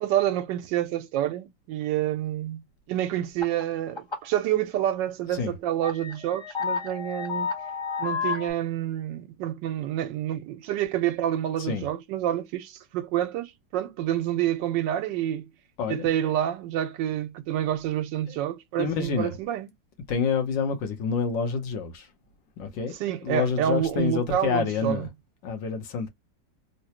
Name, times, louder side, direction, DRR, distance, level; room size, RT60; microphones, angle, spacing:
voice 1, 0.0-7.5 8.0-15.5 15.9-19.7 23.0-25.1, right 12 dB, 85° right, 1.3 m, -28 dB
sound 1, 3.4-3.6 4.0-4.3 4.8-4.9 5.5-5.6 5.8-8.5, left 6 dB, 30° left, 0.5 m, -31 dB
voice 2, 18.8-19.4 20.1-22.1 22.6-22.9 23.2-25.1 25.4-26.1, left 5 dB, 85° left, 1.6 m, -28 dB
3.8 x 2.1 x 2.8 m
omnidirectional pair, 1.9 m